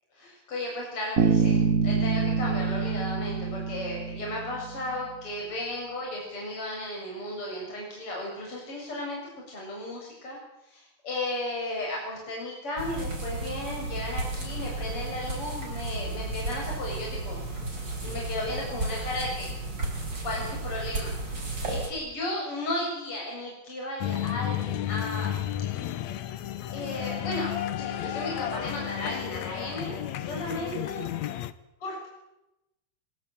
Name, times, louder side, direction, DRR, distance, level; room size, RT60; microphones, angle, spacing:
voice 1, 0.2-9.2 9.5-17.4 18.0-19.5 20.2-25.3 26.7-31.0 31.8-32.1, left 1 dB, 40° left, -2 dB, 7.8 m, -35 dB
Bass guitar, 1.2-4.9, right 5 dB, 55° right, 0.9 m, -26 dB
sound 1, 12.8-21.9, right 2 dB, 35° right, 6.8 m, -33 dB
sound 2, 24.0-31.5, left 11 dB, 65° left, 2.2 m, -32 dB
26.5 x 20.0 x 8.9 m, 0.92 s
omnidirectional pair, 3.7 m